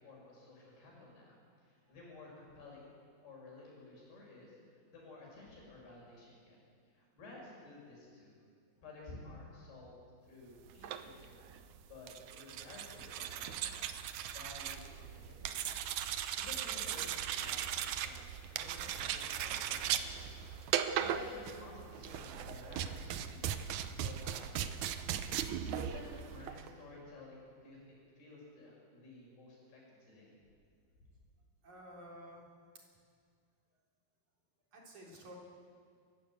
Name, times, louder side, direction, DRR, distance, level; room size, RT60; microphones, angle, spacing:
voice 1, 0.0-4.6 4.9-6.6 6.9-8.4 8.8-9.9 10.2-15.6 16.4-20.3 20.7-24.9 25.4-30.3, left 2 dB, 80° left, -3 dB, 7.7 m, -53 dB
sound 1, 10.7-26.7, right 9 dB, 80° right, 1.7 m, -38 dB
voice 2, 31.6-32.5 34.7-35.4, right 1 dB, 50° right, -2 dB, 5.1 m, -52 dB
29.0 x 14.5 x 8.1 m, 2.1 s
omnidirectional pair, 4.6 m